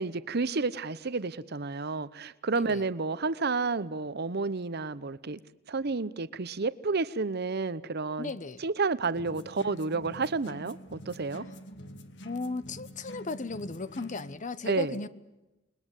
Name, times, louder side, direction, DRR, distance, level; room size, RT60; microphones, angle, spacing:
voice 1, 0.0-5.4 5.7-8.3 8.6-11.4 14.7-15.0, right 4 dB, 55° right, 0.9 m, -30 dB
voice 2, 2.5-2.8 8.2-8.6 11.5-11.6 12.2-15.1, left 3 dB, 40° left, 1.0 m, -36 dB
sound 1, 9.1-14.4, equal, 60° left, 1.8 m, -46 dB
28.5 x 21.0 x 8.2 m
head